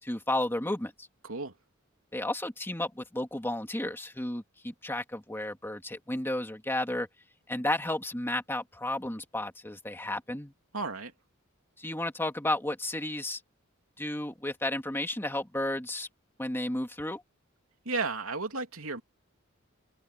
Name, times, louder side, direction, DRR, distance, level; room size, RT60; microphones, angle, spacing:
voice 1, 0.0-1.1 2.1-7.1 7.5-10.5 11.8-13.4 14.0-16.1 16.4-17.2, left 1 dB, 10° left, 2.4 m, -32 dB
voice 2, 10.7-11.1 17.8-19.0, right 3 dB, 90° right, 3.1 m, -33 dB
head